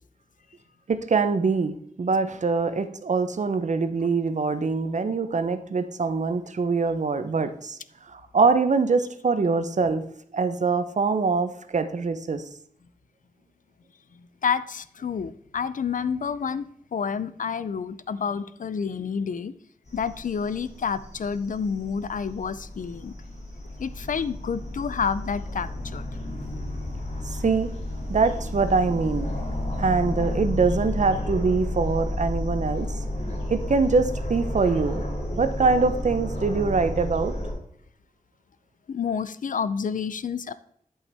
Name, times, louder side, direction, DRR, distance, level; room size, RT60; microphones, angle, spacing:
voice 1, 0.9-7.8 8.1-10.0 10.3-12.4 27.3-27.7 28.1-29.3 29.8-32.9 33.5-35.0 35.3-37.3, right 4 dB, 55° right, 10 dB, 0.7 m, -24 dB
voice 2, 14.4-16.7 16.9-19.5 19.9-23.1 23.8-26.1 38.9-40.5, left 6 dB, 65° left, 15 dB, 0.4 m, -29 dB
sound 1, 19.9-37.5, left 1 dB, 50° left, 2.5 m, -32 dB
11.0 x 5.5 x 3.4 m, 0.66 s
wide cardioid pair, 105°, 14 cm